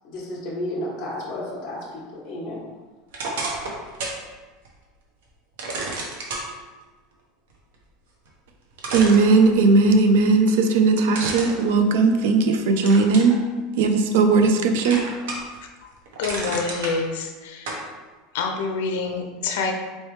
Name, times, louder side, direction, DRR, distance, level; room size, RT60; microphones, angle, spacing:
voice 1, 0.0-2.6, left 1 dB, 35° left, -6 dB, 0.9 m, -32 dB
sound 1, 3.1-4.2 4.6-4.7 5.6-6.5 8.3-8.4 8.8-9.9 11.1-12.4 12.8-13.4 13.9-14.6 14.8-15.6 15.9-16.9 17.7-17.8, right 2 dB, 85° right, 0.9 m, -31 dB
voice 2, 8.9-13.4 13.8-15.0, right 3 dB, 70° right, 6 dB, 0.4 m, -18 dB
voice 3, 16.2-17.8 18.3-19.7, left 4 dB, 70° left, 3 dB, 0.6 m, -27 dB
4.1 x 3.2 x 3.1 m, 1.3 s
supercardioid pair, 175°, 0 cm